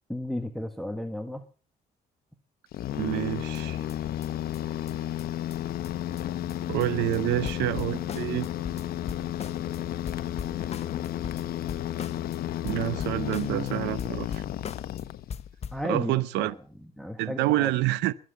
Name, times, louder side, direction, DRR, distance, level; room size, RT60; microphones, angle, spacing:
voice 1, 0.1-1.4 15.7-16.5 16.8-17.7, left 1 dB, ahead, 1.5 m, -34 dB
sound 1, 2.7-15.5, left 12 dB, 65° left, 1.1 m, -32 dB
voice 2, 2.9-3.8 6.7-8.5 12.6-14.4 15.8-16.5 17.2-18.1, right 16 dB, 90° right, 0.8 m, -28 dB
sound 2, 3.5-3.6 3.9-4.0 4.2-4.3 4.5-4.6 4.9-5.0 5.2-5.3 5.5-5.6 5.8-5.9 6.2-6.3 6.5-6.9 7.1-7.2 7.4-9.8 10.1-12.4 12.7-13.7 14.0-15.0 15.3-15.9, left 7 dB, 40° left, 1.0 m, -40 dB
22.0 x 7.6 x 7.9 m
cardioid pair, 110°, 17 cm